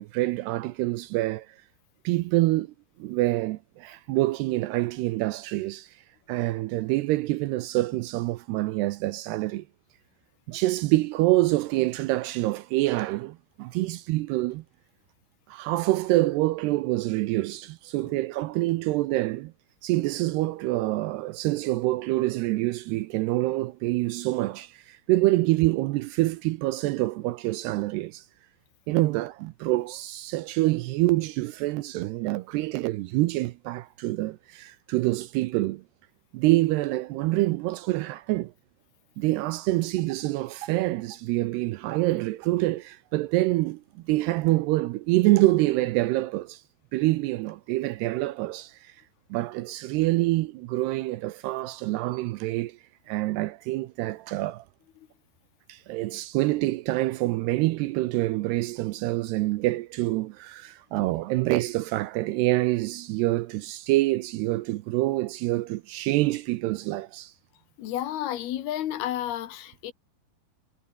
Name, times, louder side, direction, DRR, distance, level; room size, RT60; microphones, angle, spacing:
voice 1, 0.0-1.6 2.0-2.7 3.0-6.0 6.3-9.7 10.5-14.6 15.5-19.5 19.8-28.2 28.9-35.8 36.3-38.5 39.2-46.6 46.9-49.0 49.3-52.8 53.1-54.6 55.7-67.3, right 18 dB, 80° right, 2.5 m, -26 dB
voice 2, 67.8-69.9, left 12 dB, 65° left, 3.2 m, -31 dB
omnidirectional pair, 5.2 m